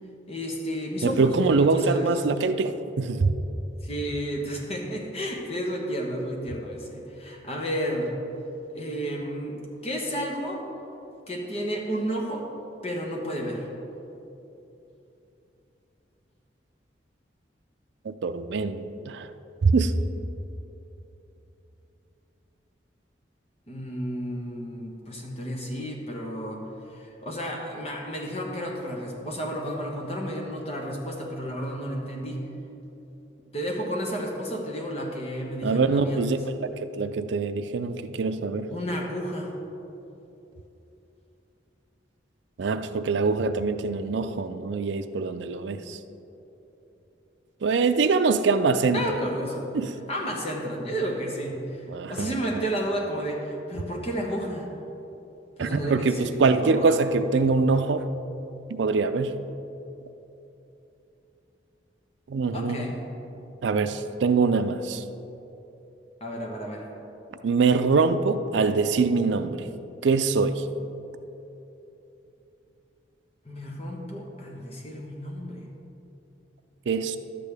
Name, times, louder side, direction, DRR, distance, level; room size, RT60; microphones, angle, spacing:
voice 1, 0.3-2.2 3.8-8.1 8.7-10.6 11.3-12.5 12.8-13.7 23.7-32.4 33.5-36.4 38.7-39.5 48.9-49.7 50.1-54.7 55.6-57.0 62.5-63.0 66.2-66.9 73.4-75.6, equal, 35° left, 0 dB, 1.2 m, -32 dB
voice 2, 1.0-3.3 18.0-19.3 19.6-19.9 35.6-36.7 36.9-38.7 42.6-46.0 47.6-49.1 49.7-49.9 51.9-52.6 55.6-58.1 58.7-59.4 62.3-62.9 63.6-65.0 67.4-69.7 70.0-70.6 76.9-77.2, right 4 dB, 80° right, 10 dB, 0.4 m, -24 dB
11.5 x 8.4 x 3.4 m, 3.0 s
head